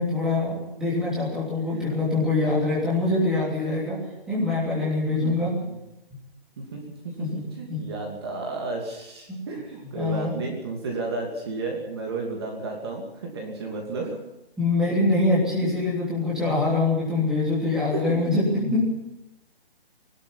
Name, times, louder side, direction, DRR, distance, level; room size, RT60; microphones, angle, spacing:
voice 1, 0.0-4.0 4.3-5.5 7.2-7.4 7.7-7.8 9.3-9.4 9.9-10.4 14.6-18.8, left 2 dB, ahead, -7 dB, 3.2 m, -24 dB
voice 2, 2.2-2.9 5.1-5.3 5.6-5.8 6.6-6.8 7.2-14.2 17.9-18.3, right 3 dB, 25° right, 0 dB, 2.8 m, -33 dB
22.0 x 12.0 x 10.0 m, 0.89 s
hypercardioid pair, 175°, 31 cm